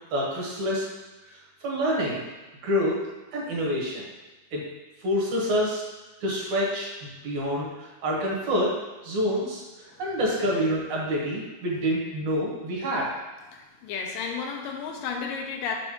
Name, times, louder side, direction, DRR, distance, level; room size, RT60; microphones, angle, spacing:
voice 1, 0.1-0.9 1.3-2.2 2.6-3.0 3.3-4.0 4.5-4.7 5.0-5.8 6.2-8.7 9.0-13.1, equal, 65° right, -4 dB, 2.6 m, -27 dB
voice 2, 13.5-15.8, left 6 dB, 90° left, 2 dB, 2.4 m, -33 dB
6.4 x 6.4 x 3.0 m, 1.1 s
omnidirectional pair, 3.9 m